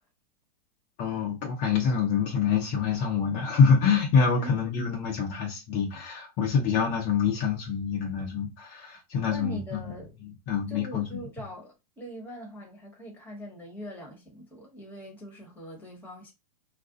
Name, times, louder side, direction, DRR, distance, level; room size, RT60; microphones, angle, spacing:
voice 1, 1.0-9.8 10.5-11.2, left 6 dB, 40° left, 0.8 m, -26 dB
voice 2, 9.2-10.2 10.7-16.3, equal, 10° left, 1.2 m, -42 dB
2.5 x 2.3 x 3.7 m
hypercardioid pair, 125°, 20 cm